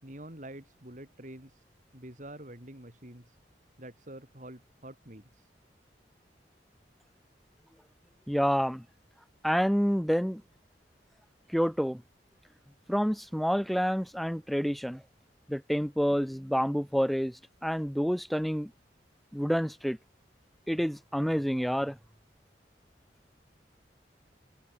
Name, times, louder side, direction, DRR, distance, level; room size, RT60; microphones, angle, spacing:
voice 1, 0.0-1.6 1.9-3.4 3.8-5.5, right 1 dB, 45° right, 6.7 m, -47 dB
voice 2, 8.3-8.8 9.4-10.4 11.5-12.0 12.9-15.0 15.5-17.3 17.6-18.7 19.3-20.0 20.7-22.0, equal, ahead, 1.1 m, -28 dB
head